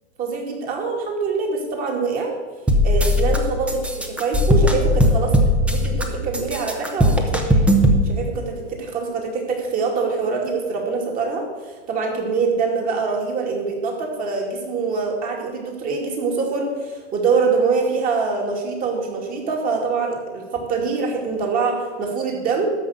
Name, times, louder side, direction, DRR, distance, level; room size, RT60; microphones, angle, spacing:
voice 1, 0.2-2.3 2.8-5.3 5.7-7.6 8.0-22.7, right 4 dB, 25° right, 1 dB, 2.2 m, -24 dB
sound 1, 2.7-3.4 3.7-6.0 6.3-8.0, equal, 5° right, 0.8 m, -17 dB
13.0 x 5.6 x 7.9 m, 1.4 s
hypercardioid pair, 150°, 35 cm